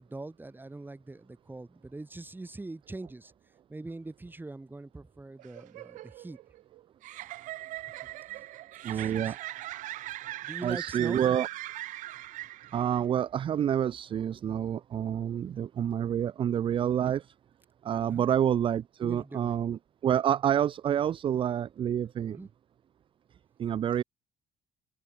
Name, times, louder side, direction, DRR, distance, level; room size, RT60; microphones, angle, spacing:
voice 1, 0.0-3.3 3.7-6.4 8.3-8.5 8.9-9.4 10.4-11.2 18.1-18.3 19.0-19.7 22.3-22.5, right 2 dB, 15° right, 3.1 m, -43 dB
sound 1, 5.4-13.0, right 16 dB, 75° right, 1.2 m, -40 dB
voice 2, 8.8-9.4 10.6-11.5 12.7-17.2 17.8-22.4 23.6-24.0, right 9 dB, 40° right, 0.4 m, -28 dB
supercardioid pair, 85°, 13 cm